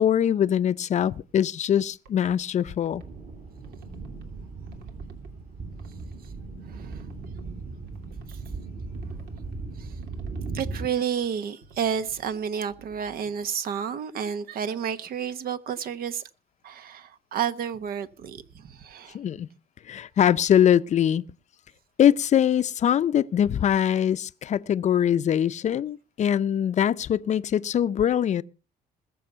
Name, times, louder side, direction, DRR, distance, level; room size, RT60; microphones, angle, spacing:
voice 1, 0.0-3.0 19.1-19.5 19.9-21.2 22.0-28.4, left 9 dB, 45° left, 0.6 m, -22 dB
sound 1, 1.8-3.0 3.6-4.2 4.7-5.3 5.7-6.3 6.8-7.4 7.9-8.5 8.9-9.5 10.0-10.7 11.1-13.5, right 4 dB, 85° right, 2.8 m, -54 dB
sound 2, 2.9-10.9, right 3 dB, 45° right, 3.7 m, -37 dB
voice 2, 6.7-7.0 8.3-8.4 9.8-10.0 10.5-16.2 16.6-19.2, right 8 dB, 60° right, 1.2 m, -31 dB
20.5 x 7.1 x 5.7 m
cardioid pair, 110°, 17 cm